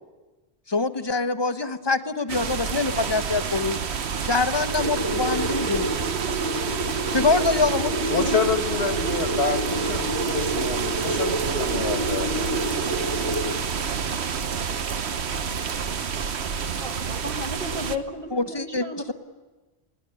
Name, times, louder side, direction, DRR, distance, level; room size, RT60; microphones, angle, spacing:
voice 1, 0.7-3.8 4.2-5.9 7.1-8.3 18.3-19.1, left 3 dB, 25° left, 9 dB, 1.0 m, -25 dB
sound 1, 2.3-18.0, right 6 dB, 75° right, 1.2 m, -28 dB
sound 2, 4.8-13.6, right 1 dB, 30° right, 1.7 m, -29 dB
voice 2, 8.1-12.5, left 5 dB, 75° left, 6 dB, 2.0 m, -28 dB
voice 3, 16.8-19.1, left 1 dB, 55° right, 2 dB, 2.2 m, -33 dB
22.5 x 18.0 x 9.9 m, 1.2 s
omnidirectional pair, 1.1 m